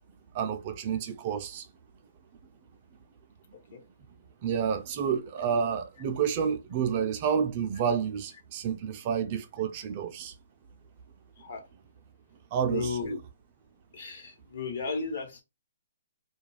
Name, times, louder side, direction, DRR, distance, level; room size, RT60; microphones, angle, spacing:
voice 1, 0.3-1.7 4.4-10.3 12.5-13.0, right 7 dB, 35° right, 0.4 m, -29 dB
voice 2, 12.7-13.2 13.9-15.4, left 4 dB, 55° left, 1.0 m, -34 dB
2.3 x 2.3 x 3.2 m
hypercardioid pair, 150°, 0 cm